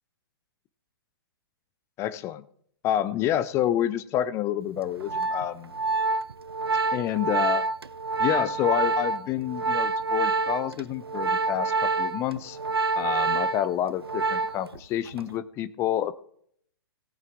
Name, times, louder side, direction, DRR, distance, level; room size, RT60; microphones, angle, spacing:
voice 1, 2.0-2.4 2.8-5.7 6.9-7.6 8.2-12.6 13.0-16.1, left 11 dB, 20° left, 16 dB, 0.5 m, -28 dB
Organ, 4.8-14.8 15.1-15.4, right 3 dB, 80° right, 0.7 m, -27 dB
17.5 x 9.1 x 3.5 m, 0.66 s
figure-of-eight pair, 120°, 13 cm